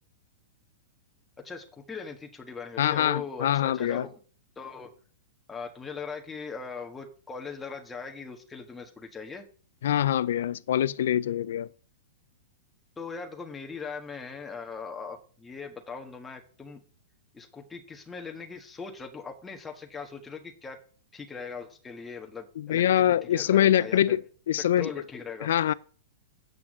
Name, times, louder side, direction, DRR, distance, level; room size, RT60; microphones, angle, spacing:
voice 1, 1.4-4.1 4.5-4.9 5.5-9.5 13.0-16.8 17.3-20.8 21.1-24.2 24.6-25.5, left 5 dB, 10° left, 1.4 m, -40 dB
voice 2, 2.8-4.0 9.8-11.7 22.6-24.2 24.5-24.9 25.4-25.7, left 11 dB, 70° left, 0.4 m, -24 dB
8.2 x 6.0 x 7.3 m
hypercardioid pair, 155°, 0 cm